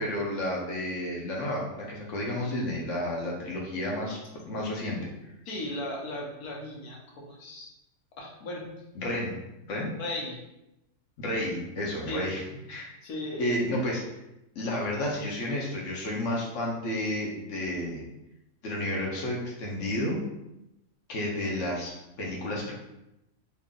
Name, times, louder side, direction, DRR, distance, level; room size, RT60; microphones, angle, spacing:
voice 1, 0.0-4.2 4.5-5.0 9.0-9.4 9.7-9.9 11.2-12.4 12.7-12.9 13.4-14.0 14.5-18.0 18.6-20.2 21.1-22.7, left 1 dB, 60° left, -2 dB, 1.1 m, -31 dB
voice 2, 5.5-7.7 8.2-8.6 10.0-10.4 12.1-12.3 13.0-13.5, left 1 dB, 90° left, -2 dB, 1.4 m, -36 dB
2.9 x 2.8 x 3.7 m, 0.89 s
omnidirectional pair, 1.5 m